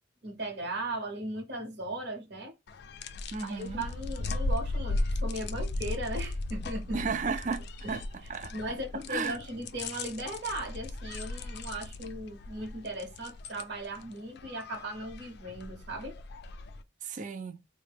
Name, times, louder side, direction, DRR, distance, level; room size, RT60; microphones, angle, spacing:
voice 1, 0.2-2.5 3.4-7.0 8.5-16.1, right 1 dB, 60° right, 0.9 m, -37 dB
sound 1, 2.7-16.8, left 2 dB, 60° left, 0.4 m, -37 dB
voice 2, 3.3-3.8 6.9-7.6 7.9-8.0 8.3-8.5 9.1-9.4 17.0-17.6, right 4 dB, 45° right, 0.5 m, -33 dB
3.9 x 2.1 x 3.3 m
head